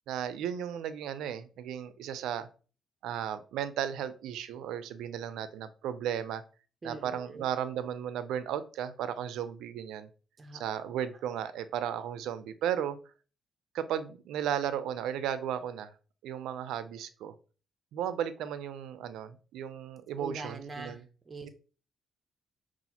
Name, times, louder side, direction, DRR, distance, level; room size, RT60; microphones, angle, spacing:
voice 1, 0.1-2.5 3.0-6.4 6.8-10.1 10.5-13.0 13.7-15.9 16.2-17.3 17.9-21.0 21.4-21.5, right 9 dB, 85° right, 13 dB, 0.4 m, -35 dB
voice 2, 6.8-7.5 10.4-10.6 20.2-21.5, right 3 dB, 30° right, 7 dB, 0.5 m, -43 dB
5.5 x 2.4 x 2.8 m, 0.37 s
cardioid pair, 90°, 0 cm